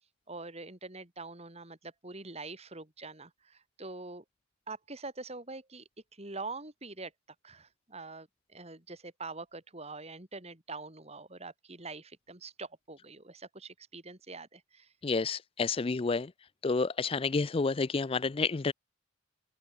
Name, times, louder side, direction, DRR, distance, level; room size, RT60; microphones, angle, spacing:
voice 1, 0.3-4.2 4.7-5.8 6.2-7.1 7.4-14.9, right 3 dB, 30° right, 3.6 m, -44 dB
voice 2, 15.0-16.3 16.6-18.7, left 4 dB, 30° left, 0.4 m, -29 dB
open air
head